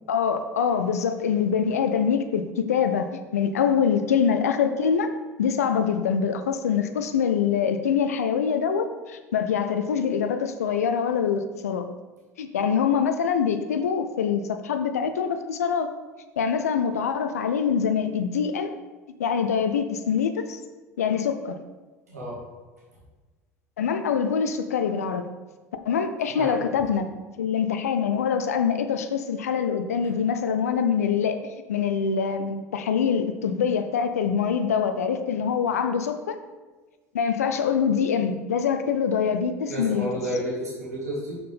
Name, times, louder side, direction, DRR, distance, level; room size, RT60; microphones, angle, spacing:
voice 1, 0.1-5.1 5.4-11.9 12.4-15.9 16.4-18.7 19.2-20.6 21.0-21.6 23.8-25.3 25.9-27.1 27.4-36.4 37.1-40.1, left 7 dB, 80° left, 8 dB, 0.4 m, -24 dB
voice 2, 39.7-41.3, right 1 dB, 90° right, -5 dB, 2.3 m, -31 dB
6.6 x 5.7 x 3.5 m, 1.3 s
hypercardioid pair, 70°, 8 cm